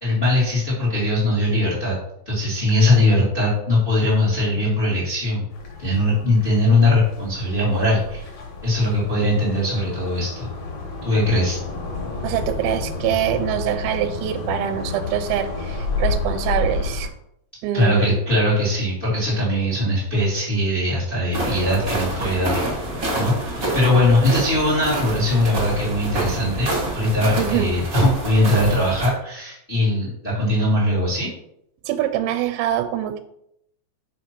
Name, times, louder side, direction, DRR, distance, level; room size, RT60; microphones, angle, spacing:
voice 1, 0.0-2.0 2.2-5.5 5.8-8.3 8.6-10.5 11.0-11.6 17.7-22.6 23.1-31.3, left 1 dB, 75° left, -5 dB, 0.5 m, -20 dB
sound 1, 5.5-17.1, left 3 dB, 55° left, 1.9 m, -30 dB
voice 2, 12.2-17.1 17.6-18.2 27.4-27.7 31.9-33.2, right 10 dB, 85° right, 8 dB, 2.8 m, -24 dB
sound 2, 21.3-29.1, right 1 dB, 50° right, 0.9 m, -27 dB
6.3 x 4.5 x 5.8 m, 0.75 s
omnidirectional pair, 5.2 m